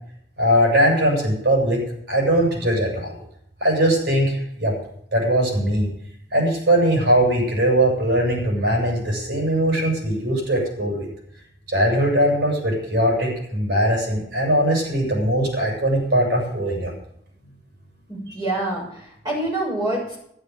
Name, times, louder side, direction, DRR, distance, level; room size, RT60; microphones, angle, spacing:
voice 1, 0.4-1.8 2.1-3.2 3.6-4.8 5.1-5.9 6.3-11.1 11.7-16.9, right 1 dB, 90° right, -1 dB, 7.3 m, -20 dB
voice 2, 18.1-20.2, right 1 dB, 25° right, -4 dB, 7.0 m, -26 dB
12.5 x 11.5 x 7.3 m, 0.73 s
head